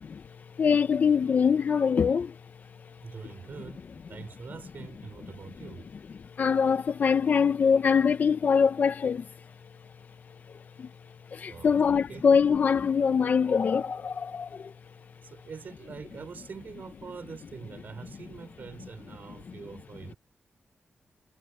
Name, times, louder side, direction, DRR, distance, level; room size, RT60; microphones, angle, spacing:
voice 1, 0.1-2.4 2.8-3.0 6.2-9.3 10.8-10.9 11.3-14.7, left 6 dB, 50° left, 0.6 m, -24 dB
voice 2, 3.0-5.9 11.5-12.2 15.2-20.2, right 6 dB, 55° right, 3.6 m, -44 dB
wide cardioid pair, 155°, 4 cm